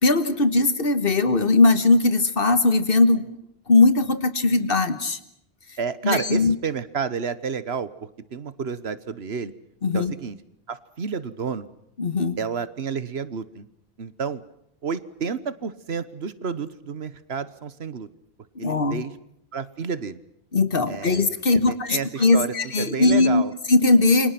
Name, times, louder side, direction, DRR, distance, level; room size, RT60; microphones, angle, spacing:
voice 1, 0.0-3.3 3.7-5.2 6.0-6.5 9.8-10.1 12.0-12.4 18.5-19.0 20.5-23.4 23.7-24.3, left 3 dB, 55° left, 11 dB, 1.6 m, -19 dB
voice 2, 5.8-9.5 9.9-10.4 10.7-11.7 12.4-13.6 14.0-14.4 14.8-18.1 18.6-19.1 19.5-20.2 20.9-21.2 21.5-23.5, right 6 dB, 70° right, 15 dB, 1.4 m, -30 dB
28.5 x 24.5 x 6.0 m, 0.75 s
omnidirectional pair, 1.1 m